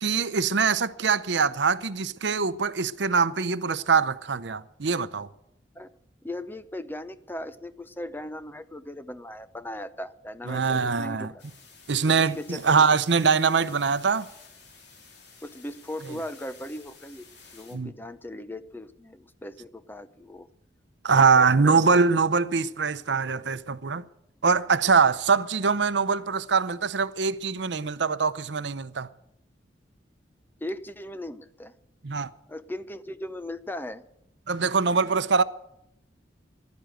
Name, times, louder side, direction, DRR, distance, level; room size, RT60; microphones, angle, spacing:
voice 1, 0.0-5.3 10.5-11.3 11.9-14.3 17.7-17.9 21.0-24.0 24.4-29.1 32.0-32.3 34.5-35.4, right 5 dB, 70° right, 0.7 m, -23 dB
voice 2, 6.2-11.3 12.1-12.8 15.4-17.3 17.5-20.5 21.4-21.8 30.6-31.7 32.5-34.0, left 1 dB, 10° left, 0.7 m, -38 dB
sound 1, 11.4-17.8, left 5 dB, 65° left, 3.7 m, -51 dB
15.5 x 11.5 x 7.8 m
head